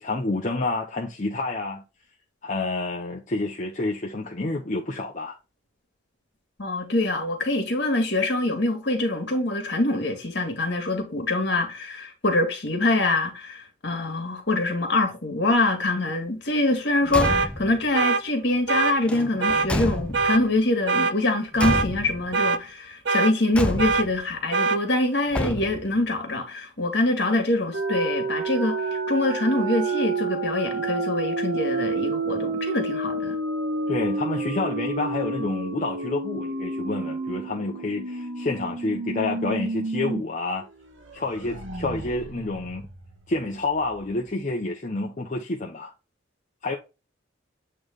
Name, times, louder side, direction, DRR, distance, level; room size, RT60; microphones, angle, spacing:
voice 1, 0.0-1.8 2.4-5.4 33.9-40.7 41.1-42.9 43.3-45.9 46.6-46.8, left 2 dB, 40° left, 0.8 m, -29 dB
voice 2, 6.6-33.4, left 2 dB, 60° left, 1.9 m, -25 dB
Car / Truck / Slam, 17.0-17.8 19.0-20.5 21.6-22.3 23.5-24.2 25.3-26.0, left 1 dB, 5° left, 0.4 m, -29 dB
sound 1, 17.2-17.5 17.9-18.2 18.7-18.9 19.4-19.7 20.1-20.4 20.9-21.1 21.6-21.9 22.3-22.6 23.1-23.3 23.8-24.1 24.5-24.8, right 4 dB, 60° right, 0.6 m, -22 dB
sound 2, 27.7-40.2 40.6-40.7 41.0-43.7, right 3 dB, 80° right, 1.5 m, -30 dB
8.6 x 3.2 x 3.7 m
head